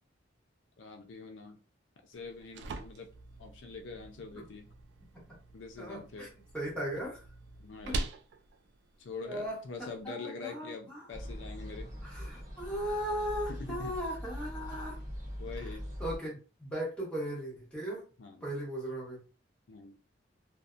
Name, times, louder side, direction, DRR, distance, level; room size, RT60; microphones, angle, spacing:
voice 1, 0.8-1.6 2.0-3.1 3.4-4.7 5.5-6.3 7.6-8.0 9.0-11.9 13.5-13.9 15.4-15.8 18.2-18.5 19.7-19.9, left 4 dB, 75° left, 4 dB, 0.4 m, -44 dB
sound 1, 2.1-10.1, right 2 dB, 65° right, 0.3 m, -44 dB
voice 2, 5.8-6.3 6.5-7.2 7.8-8.0 9.2-11.0 12.0-15.0 16.0-18.0 18.4-19.2, equal, 5° left, -5 dB, 1.0 m, -37 dB
sound 2, 11.1-16.2, equal, 45° right, 0.9 m, -42 dB
2.6 x 2.1 x 2.4 m, 0.34 s
head